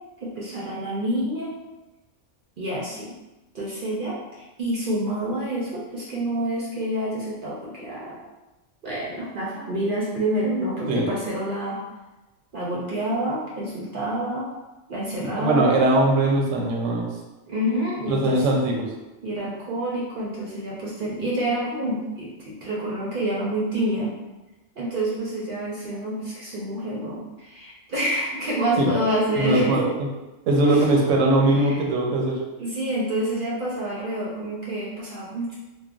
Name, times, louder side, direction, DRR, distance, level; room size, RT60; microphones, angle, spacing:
voice 1, 0.2-1.5 2.6-3.1 3.5-8.2 8.8-11.8 12.5-14.5 14.9-15.7 17.5-18.5 19.2-24.1 24.8-29.9 30.6-30.8 31.6-31.8 32.6-35.5, right 1 dB, 55° right, -6 dB, 0.6 m, -28 dB
voice 2, 15.3-17.1 18.1-18.8 28.8-28.9 29.4-30.1 30.5-32.4, right 2 dB, 80° right, 0 dB, 0.9 m, -20 dB
3.1 x 2.1 x 2.4 m, 1.0 s
omnidirectional pair, 1.3 m